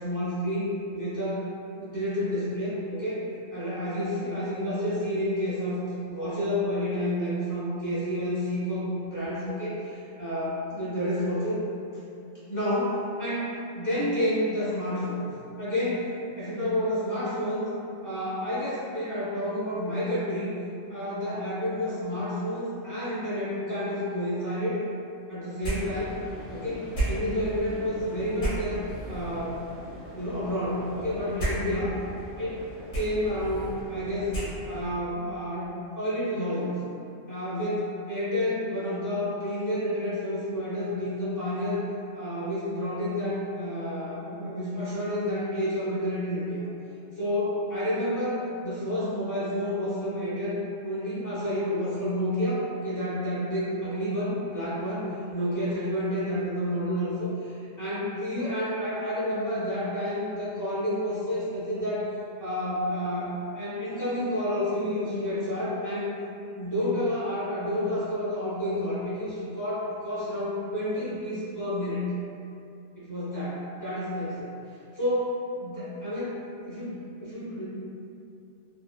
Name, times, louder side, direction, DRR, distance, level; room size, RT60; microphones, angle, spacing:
voice 1, 0.0-1.5 1.8-11.6 12.5-15.3 15.6-16.1 16.4-17.7 18.0-20.5 20.9-24.8 25.3-26.2 26.5-29.6 30.1-32.0 32.4-34.3 34.7-35.7 35.9-36.8 37.3-41.8 42.1-46.7 47.1-55.0 55.3-62.1 62.4-66.1 66.5-72.0 72.9-74.5 74.9-76.4 76.7-76.9 77.2-77.7, equal, 20° left, -12 dB, 0.7 m, -30 dB
sound 1, 25.6-35.0, right 1 dB, 45° left, 1.1 m, -35 dB
2.8 x 2.2 x 2.3 m, 2.5 s
omnidirectional pair, 1.4 m